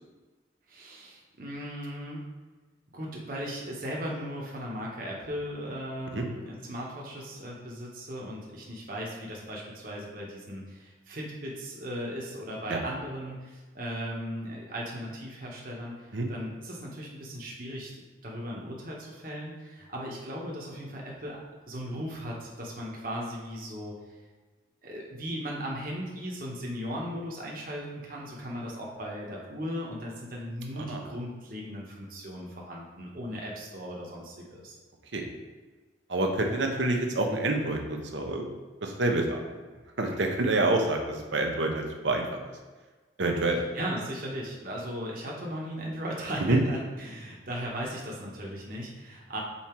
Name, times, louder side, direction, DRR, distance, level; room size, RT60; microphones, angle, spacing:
voice 1, 0.7-2.2 2.9-21.4 21.7-24.0 24.8-34.8 43.7-49.4, equal, 45° right, -3 dB, 1.2 m, -37 dB
voice 2, 36.1-38.5 38.8-39.4 40.0-42.5 43.2-43.6 46.5-46.6, right 2 dB, 75° right, 2 dB, 1.0 m, -27 dB
5.6 x 4.3 x 4.5 m, 1.3 s
head